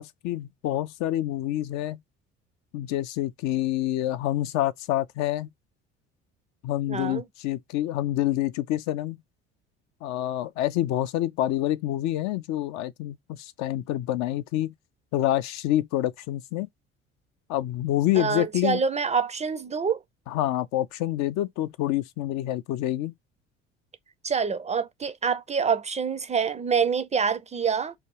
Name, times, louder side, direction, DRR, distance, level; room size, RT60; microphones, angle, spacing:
voice 1, 0.0-2.0 2.7-5.5 6.6-9.2 10.0-14.7 15.1-16.7 17.5-18.8 20.3-23.1, left 13 dB, 55° left, 0.4 m, -27 dB
voice 2, 6.9-7.2 18.1-20.0 24.2-27.9, right 6 dB, 20° right, 0.4 m, -26 dB
3.3 x 2.3 x 3.1 m
hypercardioid pair, 60°, 34 cm